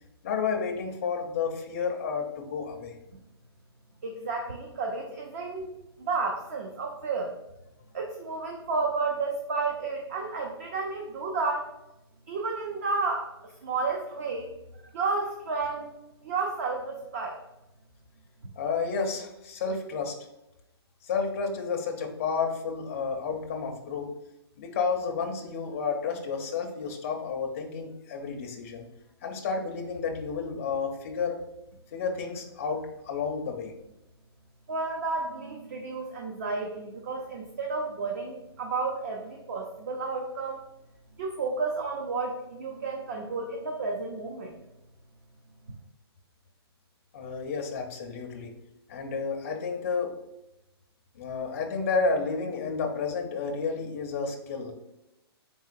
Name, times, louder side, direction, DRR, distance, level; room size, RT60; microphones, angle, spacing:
voice 1, 0.2-3.0 18.6-20.1 21.0-24.1 24.6-28.9 29.2-31.4 31.9-33.7 47.1-48.5 48.9-50.1 51.2-54.7, left 5 dB, 30° left, 2 dB, 0.5 m, -31 dB
voice 2, 4.0-5.7 6.0-7.3 7.9-11.7 12.3-13.3 13.6-14.5 14.9-15.9 16.2-17.4 34.7-40.6 41.2-44.5, right 4 dB, 40° right, 1 dB, 0.5 m, -31 dB
3.8 x 3.8 x 2.4 m, 0.91 s
hypercardioid pair, 165°, 14 cm